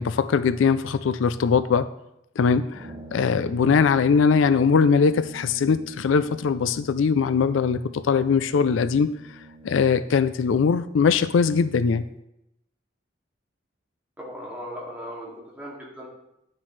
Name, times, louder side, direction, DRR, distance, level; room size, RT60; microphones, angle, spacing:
voice 1, 0.0-1.9 2.4-9.1 9.6-12.0, left 5 dB, 80° left, 13 dB, 0.4 m, -21 dB
Brass instrument, 2.7-10.2, right 3 dB, 30° right, 2.1 m, -46 dB
voice 2, 14.2-16.1, equal, 10° right, -5 dB, 2.3 m, -37 dB
11.0 x 7.3 x 3.2 m, 0.85 s
head